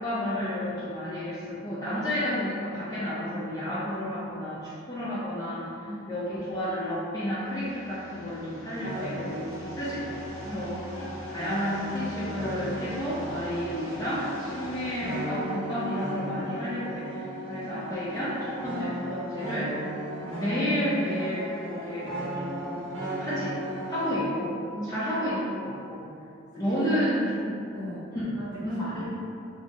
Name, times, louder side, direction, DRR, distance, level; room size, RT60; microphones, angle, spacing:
voice 1, 0.0-5.7 6.1-10.0 10.4-10.8 11.3-19.7 20.3-22.8 23.2-23.6 23.9-24.6 24.8-26.0 26.6-27.2 28.1-29.1, equal, 20° left, -10 dB, 0.4 m, -31 dB
voice 2, 5.8-6.1 10.4-10.7 17.5-17.7 24.7-25.1 26.5-28.1 28.4-29.1, right 1 dB, 20° right, -11 dB, 0.9 m, -39 dB
sound 1, 7.4-15.5, left 1 dB, 85° left, 0.6 m, -43 dB
sound 2, 8.8-24.2, right 1 dB, 80° right, 0.7 m, -36 dB
2.6 x 2.0 x 3.4 m, 2.5 s
head